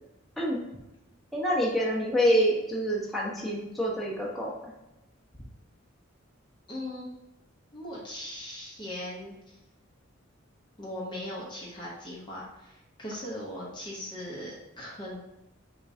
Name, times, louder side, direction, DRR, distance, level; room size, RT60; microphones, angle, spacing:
voice 1, 1.3-4.7, equal, ahead, -6 dB, 1.0 m, -27 dB
voice 2, 6.7-7.1 7.7-9.6 10.8-15.2, left 1 dB, 25° left, -5 dB, 0.9 m, -39 dB
4.6 x 3.6 x 2.7 m, 0.95 s
head